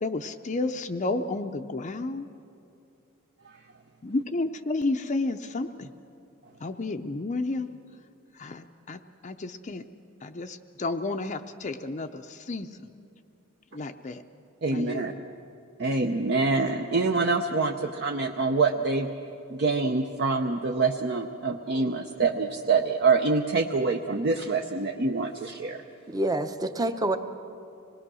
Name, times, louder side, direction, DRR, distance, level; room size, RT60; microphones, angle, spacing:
voice 1, 0.0-2.3 4.0-5.9 6.6-7.7 8.3-9.9 10.2-12.9 13.7-14.2 14.7-15.2, left 2 dB, 35° left, 6 dB, 0.5 m, -31 dB
voice 2, 14.6-15.1 15.8-19.1 19.5-25.8, right 4 dB, 50° right, 3 dB, 0.7 m, -25 dB
voice 3, 26.1-27.2, right 1 dB, 15° right, 8 dB, 0.8 m, -27 dB
25.5 x 19.5 x 6.2 m, 2.6 s
head